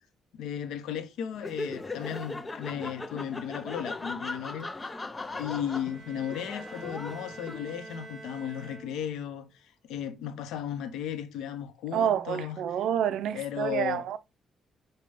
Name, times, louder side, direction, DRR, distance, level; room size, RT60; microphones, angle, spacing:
voice 1, 0.3-4.7 5.4-9.5 9.9-12.6 13.3-14.2, left 9 dB, 85° left, 0.7 m, -35 dB
Laughter, 1.3-7.9, left 2 dB, 25° left, 0.5 m, -39 dB
Bowed string instrument, 5.6-9.3, right 2 dB, 35° right, 1.1 m, -47 dB
voice 2, 11.9-14.2, right 9 dB, 75° right, 0.4 m, -28 dB
6.5 x 2.2 x 3.4 m
cardioid pair, 90°, 0 cm